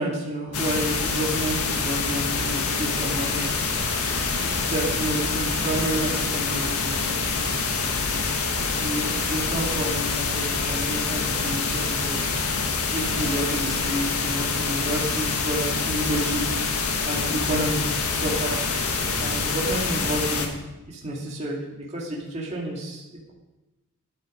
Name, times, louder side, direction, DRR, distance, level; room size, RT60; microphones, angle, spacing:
voice 1, 0.0-4.0 4.3-7.6 8.7-12.2 12.9-16.4 17.0-18.6 19.2-20.5 20.9-23.0, right 1 dB, 30° right, -4 dB, 2.6 m, -30 dB
sound 1, 0.5-20.5, left 4 dB, 85° left, 1.7 m, -26 dB
13.0 x 9.5 x 5.2 m, 1.0 s
head